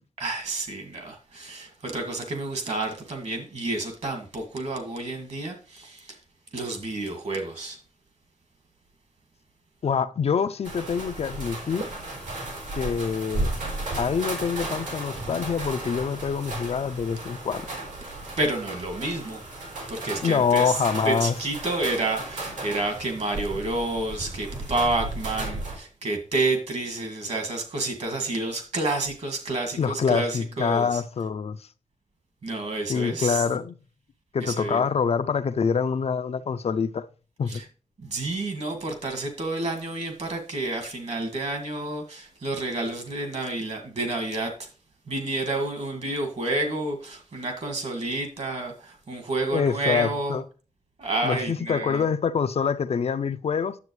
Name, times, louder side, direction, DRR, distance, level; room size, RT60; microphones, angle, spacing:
voice 1, 0.2-6.2 6.5-7.8 18.4-19.4 19.9-20.8 21.0-31.0 32.4-33.4 34.4-34.9 37.5-37.6 38.0-44.7 45.1-50.4 51.0-52.0, right 2 dB, 60° right, 2.0 m, -29 dB
voice 2, 9.8-11.9 12.7-13.5 13.9-17.7 20.2-21.3 29.8-31.7 32.9-33.8 34.3-37.1 37.4-37.6 49.5-50.4 51.2-53.8, left 6 dB, 55° left, 0.4 m, -25 dB
sound 1, 10.6-25.8, right 2 dB, 85° right, 3.8 m, -34 dB
9.6 x 7.7 x 3.2 m
wide cardioid pair, 180°, 13 cm